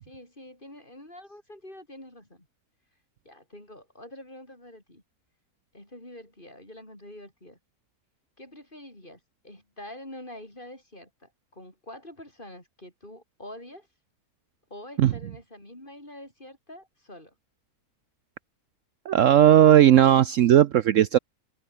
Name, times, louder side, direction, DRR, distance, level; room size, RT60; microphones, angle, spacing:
voice 1, 0.0-2.5 3.2-5.0 5.7-7.6 8.4-13.9 14.7-17.3, left 1 dB, 35° left, 7.8 m, -46 dB
voice 2, 19.1-21.2, right 11 dB, 65° right, 0.9 m, -17 dB
omnidirectional pair, 1.6 m